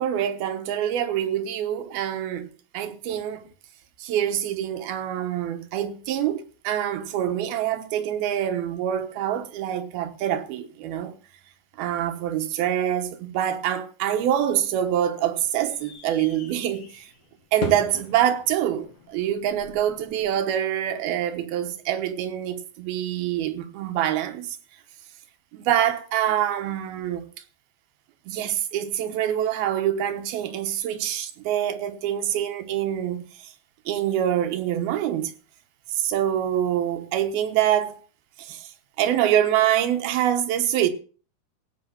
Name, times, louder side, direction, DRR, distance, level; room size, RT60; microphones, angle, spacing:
voice 1, 0.0-3.5 4.0-11.1 11.8-17.1 17.5-24.6 25.5-27.3 28.3-33.5 33.9-35.3 35.9-38.0 38.4-38.7 39.0-40.9, right 10 dB, 80° right, 3.1 m, -25 dB
sound 1, 14.3-20.3, left 4 dB, 75° left, 4.0 m, -40 dB
16.5 x 5.7 x 8.7 m
omnidirectional pair, 4.3 m